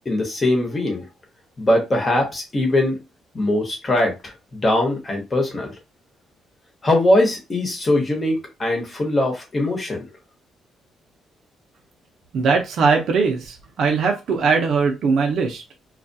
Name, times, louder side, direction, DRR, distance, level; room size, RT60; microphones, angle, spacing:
voice 1, 0.0-1.1 1.6-3.0 3.3-5.7 6.8-10.1, left 1 dB, 30° left, 1 dB, 1.1 m, -21 dB
voice 2, 12.3-15.6, right 5 dB, 65° right, 2 dB, 0.6 m, -20 dB
2.3 x 2.3 x 2.6 m, 0.25 s
cardioid pair, 90°, 0 cm